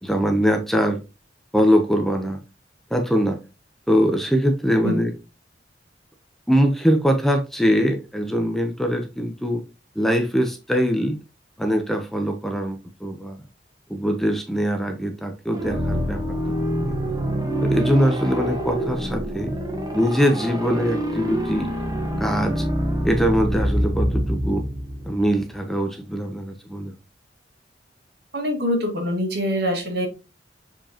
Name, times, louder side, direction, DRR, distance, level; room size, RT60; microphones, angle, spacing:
voice 1, 0.0-1.0 1.5-2.4 2.9-3.4 3.9-5.1 6.5-9.6 10.0-11.2 11.6-13.5 13.9-16.6 16.9-17.0 17.6-19.5 19.9-21.7 22.2-22.7 23.0-24.7 25.0-26.9, equal, ahead, 0.8 m, -22 dB
sound 1, 15.5-25.3, equal, 20° right, 1.4 m, -26 dB
voice 2, 28.3-30.1, equal, 60° right, 2.3 m, -24 dB
6.9 x 5.2 x 2.9 m
head